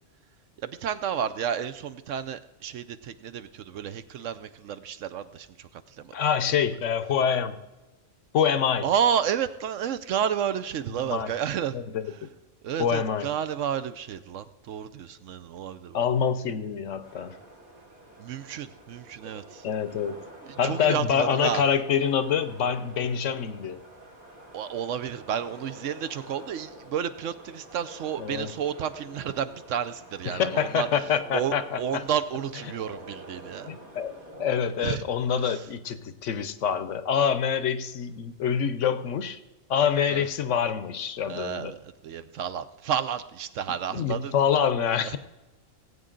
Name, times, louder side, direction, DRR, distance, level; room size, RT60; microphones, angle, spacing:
voice 1, 0.6-5.5 6.0-6.1 8.8-11.7 12.6-16.0 18.2-19.6 20.6-21.6 24.5-30.9 31.3-33.8 34.8-35.0 35.5-35.6 40.1-40.2 41.2-44.3 45.0-45.2, right 8 dB, 70° right, 12 dB, 0.9 m, -31 dB
voice 2, 6.1-7.6 8.3-8.9 11.1-11.3 11.7-12.1 12.8-13.3 15.9-17.4 19.6-20.2 20.6-23.8 28.2-28.5 30.2-32.0 33.7-39.4 39.7-41.7 43.9-45.2, left 7 dB, 70° left, 12 dB, 1.0 m, -26 dB
sound 1, 17.0-34.6, right 1 dB, 90° right, 4.1 m, -47 dB
19.0 x 8.3 x 3.8 m, 1.1 s
omnidirectional pair, 1.4 m